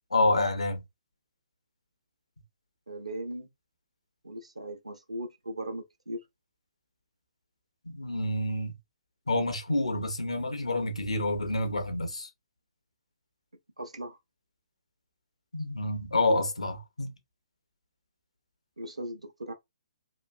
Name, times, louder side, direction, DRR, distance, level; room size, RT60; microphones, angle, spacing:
voice 1, 0.1-0.8 7.8-8.7 9.3-12.3 15.5-17.1, left 2 dB, 75° left, 0.9 m, -28 dB
voice 2, 2.9-3.5 4.2-6.2 13.8-14.2 18.8-19.5, right 1 dB, 80° right, 0.8 m, -38 dB
3.0 x 2.5 x 2.4 m
figure-of-eight pair, 130°, 3 cm